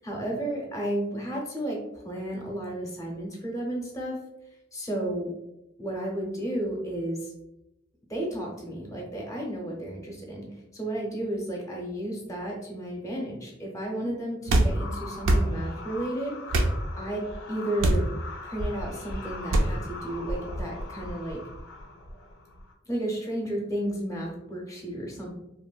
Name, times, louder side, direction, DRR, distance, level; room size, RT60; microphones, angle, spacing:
voice 1, 0.0-4.2 4.7-5.3 5.8-7.3 8.1-16.4 17.0-18.1 18.4-21.4 22.9-25.4, right 1 dB, 15° left, -1 dB, 0.6 m, -33 dB
sound 1, 14.5-14.7 15.2-15.5 16.5-16.7 17.8-18.1 19.5-19.7, right 1 dB, 75° right, 0.4 m, -21 dB
sound 2, 14.7-22.7, left 1 dB, 80° left, 0.4 m, -39 dB
2.9 x 2.1 x 2.3 m, 0.88 s
head